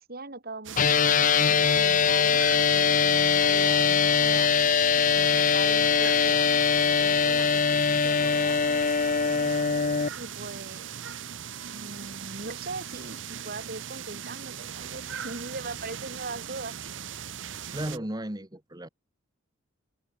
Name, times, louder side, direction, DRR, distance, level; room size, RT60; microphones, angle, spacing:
voice 1, 0.1-4.5 5.1-6.5 7.0-8.6 10.2-11.0 11.7-16.8, right 3 dB, 50° right, 3.1 m, -40 dB
sound 1, 0.6-18.0, right 8 dB, 70° right, 0.9 m, -39 dB
sound 2, 0.8-10.1, left 6 dB, 40° left, 0.7 m, -22 dB
voice 2, 17.7-18.9, right 1 dB, 20° right, 1.8 m, -34 dB
head